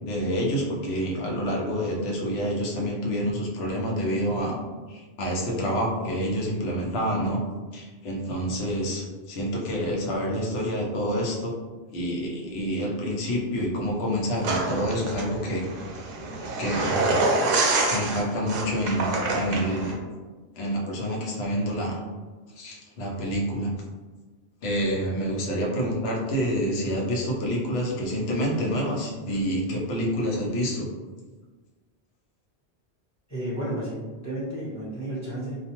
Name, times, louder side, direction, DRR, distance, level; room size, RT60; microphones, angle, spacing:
voice 1, 0.0-4.6 4.9-7.4 7.7-11.5 11.9-15.6 16.6-17.1 17.9-20.0 20.5-22.0 22.6-23.7 24.6-30.9, equal, 75° left, -3 dB, 0.9 m, -28 dB
sound 1, 14.4-19.9, right 2 dB, 60° right, 0.7 m, -26 dB
voice 2, 33.3-35.6, right 1 dB, 15° left, -9 dB, 0.8 m, -32 dB
2.4 x 2.3 x 2.8 m, 1.3 s
omnidirectional pair, 1.1 m